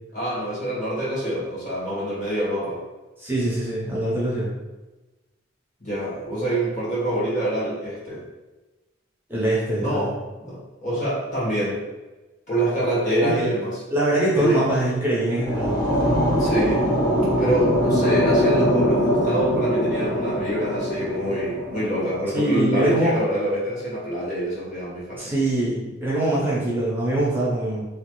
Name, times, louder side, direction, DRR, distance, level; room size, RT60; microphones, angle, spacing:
voice 1, 0.1-2.8 5.8-8.2 9.8-11.8 12.5-13.8 14.4-14.6 16.4-16.9 17.4-25.3, right 1 dB, 40° left, -8 dB, 1.5 m, -26 dB
voice 2, 3.2-4.5 9.3-10.1 13.2-13.5 13.9-16.0 22.3-23.2 25.2-27.9, right 1 dB, 10° right, -7 dB, 0.6 m, -23 dB
sound 1, 15.0-22.2, equal, 65° left, 1.1 m, -22 dB
3.1 x 2.4 x 3.0 m, 1.1 s
head